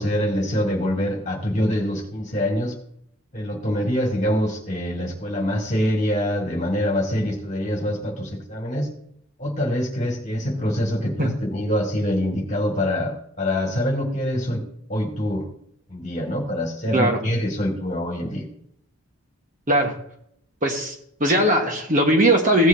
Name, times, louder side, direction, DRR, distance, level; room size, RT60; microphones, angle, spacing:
voice 1, 0.0-2.7 3.3-8.9 9.4-14.6 14.9-15.5 15.9-18.5, equal, 35° left, 1 dB, 2.0 m, -25 dB
voice 2, 20.6-20.9 21.2-22.7, right 1 dB, 35° right, 2 dB, 1.3 m, -19 dB
16.0 x 8.1 x 2.7 m, 0.69 s
head